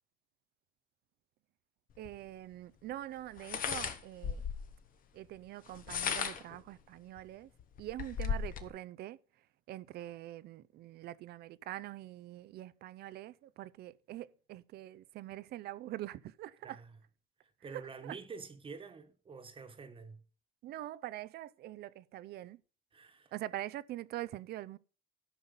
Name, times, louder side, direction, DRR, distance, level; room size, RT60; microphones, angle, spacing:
sound 1, 2.0-2.1 3.4-4.7 5.7-6.6 7.2-7.3 7.6-8.7, left 7 dB, 55° left, 1.3 m, -36 dB
voice 1, 2.0-4.4 5.1-7.5 7.8-9.2 9.7-16.8 17.7-18.2 20.6-22.6 23.3-24.8, right 14 dB, 70° right, 0.6 m, -44 dB
voice 2, 16.6-16.9 17.6-20.2 22.9-23.3, right 4 dB, 30° right, 1.4 m, -48 dB
13.0 x 5.6 x 5.4 m
cardioid pair, 110°, 17 cm